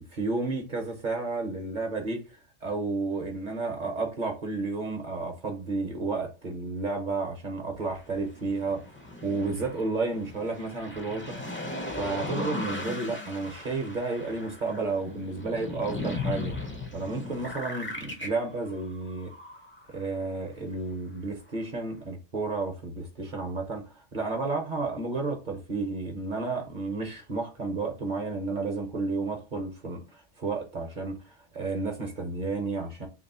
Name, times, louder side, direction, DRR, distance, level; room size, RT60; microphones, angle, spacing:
voice 1, 0.1-2.2 2.6-8.8 9.2-11.4 11.9-16.5 16.9-19.3 19.9-33.1, right 3 dB, 45° right, 0.9 m, -32 dB
sound 1, 7.8-20.1 20.6-20.7, left 2 dB, 15° left, 0.5 m, -37 dB
3.0 x 3.0 x 4.1 m
omnidirectional pair, 1.2 m